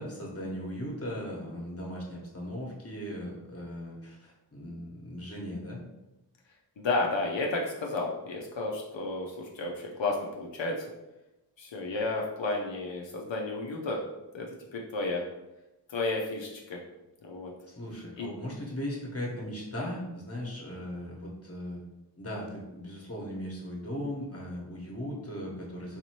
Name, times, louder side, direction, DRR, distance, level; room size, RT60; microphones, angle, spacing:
voice 1, 0.0-5.8 17.7-21.8 22.2-26.0, equal, 35° left, -2 dB, 1.1 m, -38 dB
voice 2, 6.8-10.8 11.6-14.0 14.3-14.5 14.7-15.2 15.9-16.8 17.2-17.5 18.2-18.3, left 2 dB, 85° left, -1 dB, 0.6 m, -32 dB
4.1 x 2.7 x 2.9 m, 0.96 s
wide cardioid pair, 55°, 44 cm